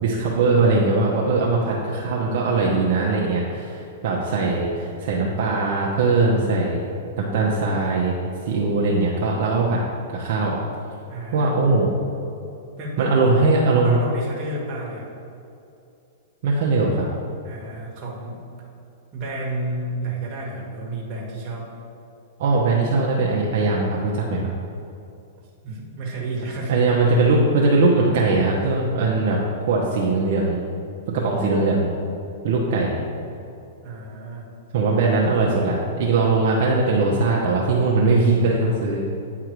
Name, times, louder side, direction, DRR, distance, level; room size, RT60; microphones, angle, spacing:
voice 1, 0.0-6.8 7.2-8.2 8.4-9.8 10.1-10.6 11.3-11.9 13.0-14.0 16.4-17.1 22.4-24.5 26.7-29.4 29.7-30.6 31.1-31.9 32.4-33.0 34.7-39.0, right 3 dB, 55° right, -4 dB, 0.9 m, -20 dB
voice 2, 1.3-1.8 11.1-11.5 12.8-15.1 17.4-18.4 19.1-21.7 25.6-27.2 33.8-34.5, right 2 dB, 30° right, -3 dB, 1.6 m, -31 dB
9.0 x 3.6 x 4.7 m, 2.6 s
hypercardioid pair, 145°, 0 cm